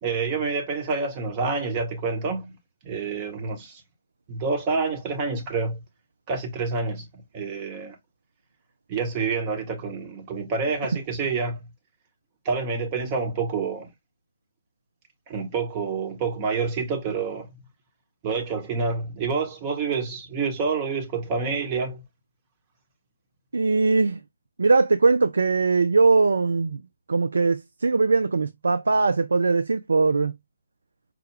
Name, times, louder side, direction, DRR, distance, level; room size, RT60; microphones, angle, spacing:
voice 1, 0.0-2.6 2.8-3.8 4.3-5.8 6.3-8.0 8.9-11.6 12.4-13.9 15.3-17.5 18.2-22.0, right 4 dB, 25° right, 1.0 m, -28 dB
voice 2, 23.5-24.2 24.6-26.8 27.1-30.3, right 4 dB, 65° right, 0.4 m, -21 dB
4.8 x 2.3 x 3.2 m
figure-of-eight pair, 135°, 0 cm